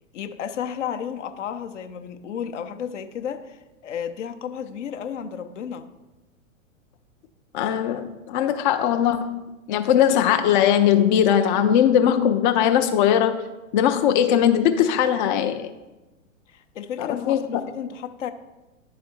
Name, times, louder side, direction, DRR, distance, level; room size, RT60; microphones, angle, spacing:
voice 1, 0.1-5.9 16.5-18.3, left 8 dB, 65° left, 0.8 m, -33 dB
voice 2, 7.5-9.4 9.7-13.4 13.7-15.7 17.0-17.6, left 9 dB, 40° left, 0.5 m, -20 dB
10.5 x 4.1 x 4.2 m
hypercardioid pair, 110°, 39 cm